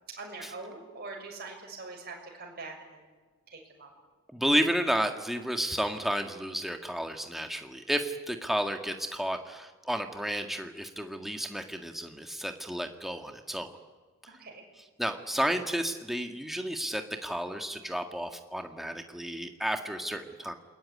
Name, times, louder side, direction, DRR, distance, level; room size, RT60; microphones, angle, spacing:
voice 1, 0.2-3.0 3.5-3.9 14.3-14.6, right 3 dB, 45° right, 1 dB, 6.6 m, -43 dB
voice 2, 4.3-13.7 15.0-20.5, equal, ahead, 5 dB, 1.7 m, -32 dB
28.5 x 21.0 x 9.6 m, 1.4 s
head